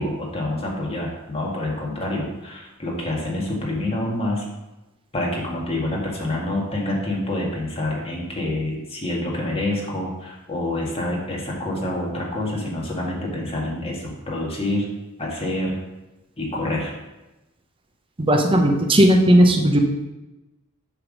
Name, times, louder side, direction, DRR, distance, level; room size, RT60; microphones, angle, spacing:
voice 1, 0.0-4.5 5.1-14.9 15.2-15.8 16.4-17.0, left 1 dB, 25° left, -3 dB, 1.7 m, -27 dB
voice 2, 18.2-19.8, right 1 dB, 25° right, 3 dB, 0.7 m, -16 dB
7.8 x 3.5 x 6.3 m, 1.0 s
head